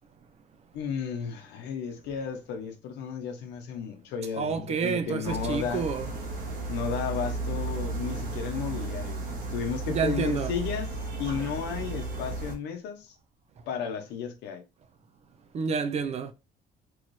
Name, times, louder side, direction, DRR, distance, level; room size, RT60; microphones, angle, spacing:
voice 1, 0.7-5.9 6.7-9.2 9.5-10.9 11.2-13.1 13.7-14.6, left 7 dB, 90° left, 0.8 m, -33 dB
voice 2, 4.3-6.1 9.9-10.6 15.5-16.3, right 6 dB, 40° right, 0.5 m, -29 dB
sound 1, 5.2-12.5, right 2 dB, 55° right, 1.1 m, -34 dB
3.1 x 2.6 x 3.1 m
cardioid pair, 110°, 17 cm